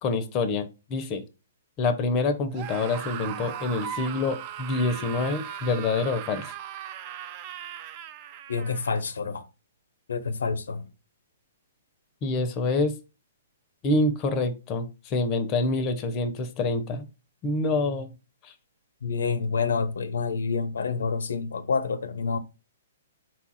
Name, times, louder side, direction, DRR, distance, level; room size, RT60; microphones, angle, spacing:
voice 1, 0.0-1.2 1.8-6.5 12.2-12.9 13.8-17.1 17.4-18.1 18.4-18.5, left 3 dB, 25° left, 0.6 m, -26 dB
Screaming, 2.5-9.0, right 10 dB, 35° right, 0.3 m, -38 dB
voice 2, 8.5-9.4 10.1-10.9 19.0-22.4, left 5 dB, 90° left, 0.5 m, -28 dB
4.4 x 2.4 x 4.1 m
hypercardioid pair, 150°, 0 cm